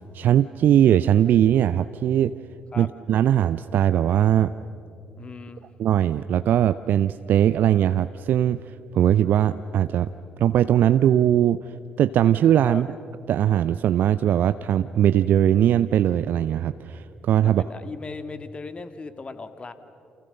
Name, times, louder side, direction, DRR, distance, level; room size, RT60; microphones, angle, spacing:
voice 1, 0.1-2.3 2.8-4.5 5.8-8.6 8.9-10.1 10.4-11.6 12.0-12.9 13.3-17.6, right 10 dB, 55° right, 13 dB, 0.5 m, -20 dB
voice 2, 5.2-5.7 12.6-12.8 17.4-19.7, left 4 dB, 30° left, 10 dB, 2.0 m, -37 dB
29.0 x 28.5 x 6.7 m, 2.6 s
figure-of-eight pair, 45°, 4 cm